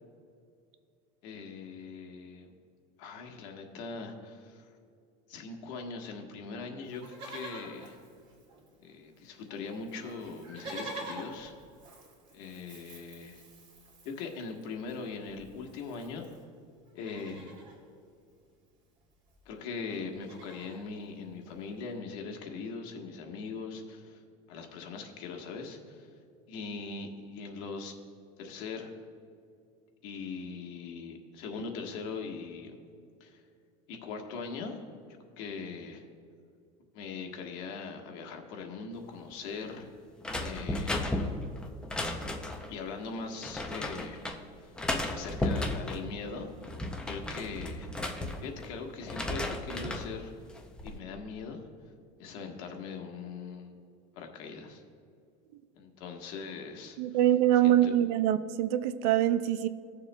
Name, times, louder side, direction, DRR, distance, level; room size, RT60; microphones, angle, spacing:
voice 1, 1.2-2.5 3.0-4.7 5.3-8.0 8.8-11.5 12.3-13.4 14.0-16.4 16.9-17.5 19.4-24.2 24.5-26.1 26.5-28.0 28.4-28.9 30.0-32.8 33.2-33.4 33.9-34.9 35.4-36.1 36.9-39.9 40.4-41.4 42.7-44.3 44.6-44.7 45.1-46.7 47.0-47.9 48.4-50.3 50.8-51.6 52.2-53.8 54.1-54.8 55.8-57.0 57.6-57.9, left 4 dB, 65° left, 3 dB, 1.3 m, -41 dB
Livestock farm animals working animals, 6.9-8.9 9.2-9.3 9.5-16.4 16.9-17.8 19.0-19.1 19.3-19.5 19.9-20.9 21.5-21.6, right 2 dB, 35° right, 2.1 m, -47 dB
sound 1, 40.2-42.7 43.4-44.4 44.8-46.0 46.5-48.7 49.0-50.1 50.5-51.0, left 1 dB, 5° left, 0.5 m, -34 dB
voice 2, 57.0-59.7, right 12 dB, 65° right, 12 dB, 0.5 m, -24 dB
17.0 x 6.9 x 2.2 m, 2.4 s
cardioid pair, 165°, 16 cm